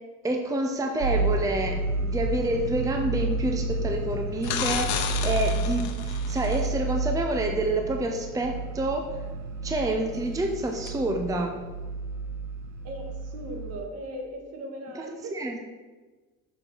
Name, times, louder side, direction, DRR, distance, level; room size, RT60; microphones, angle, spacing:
voice 1, 0.2-9.1 9.6-11.6 14.9-15.6, right 1 dB, 10° right, 3 dB, 0.6 m, -28 dB
sound 1, 1.0-13.8, right 3 dB, 70° right, 0.8 m, -31 dB
sound 2, 4.4-6.7 10.9-11.0, left 8 dB, 80° left, 0.9 m, -32 dB
voice 2, 12.8-15.3, right 1 dB, 55° right, 3 dB, 1.6 m, -38 dB
6.5 x 4.8 x 6.0 m, 1.3 s
cardioid pair, 125°, 30 cm